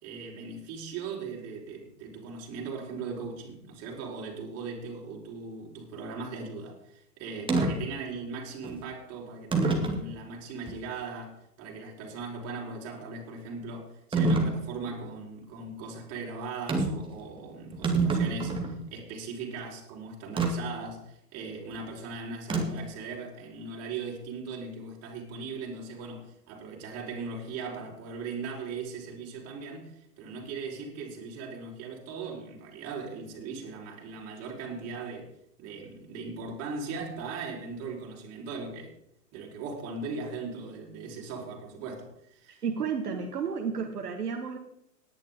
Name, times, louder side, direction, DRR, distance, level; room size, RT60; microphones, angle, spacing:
voice 1, 0.0-35.3 35.6-38.9 39.3-42.6, right 4 dB, 30° right, 4.4 m, -39 dB
sound 1, 7.5-7.7 8.6-8.8 9.5-10.0 10.7-10.8 14.1-14.5 16.7-17.0 17.4-17.5 17.7-18.8 20.4-20.5 22.5-22.9, right 3 dB, 10° right, 2.1 m, -26 dB
voice 2, 42.6-44.6, right 6 dB, 75° right, 1.7 m, -32 dB
18.5 x 10.5 x 3.7 m
figure-of-eight pair, 110°, 47 cm